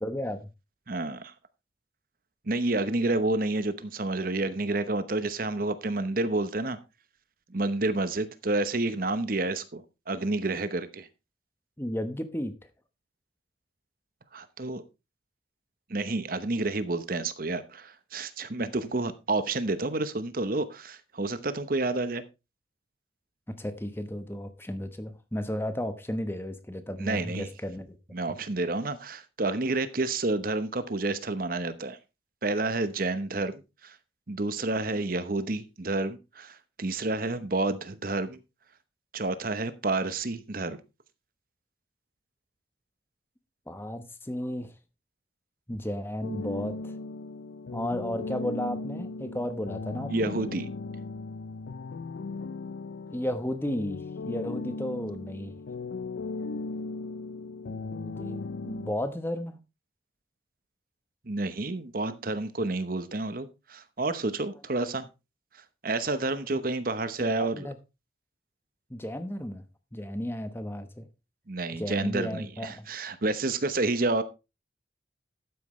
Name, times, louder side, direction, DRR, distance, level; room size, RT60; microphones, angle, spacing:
voice 1, 0.0-0.5 11.8-12.5 23.5-28.0 43.7-44.7 45.7-46.9 47.7-50.4 53.1-55.5 57.6-59.6 66.5-66.6 67.2-67.7 68.9-69.6 69.9-71.1 71.7-72.9, left 1 dB, 10° left, 1.0 m, -34 dB
voice 2, 0.9-1.3 2.5-6.8 7.5-11.1 14.3-14.8 15.9-22.2 27.0-27.5 28.1-32.0 32.4-34.0 34.3-38.4 39.1-40.8 50.1-50.7 61.3-65.1 65.8-67.7 71.5-74.2, right 2 dB, 50° right, 0.9 m, -29 dB
sound 1, 46.2-58.9, left 3 dB, 70° left, 0.5 m, -37 dB
12.5 x 9.2 x 3.2 m
head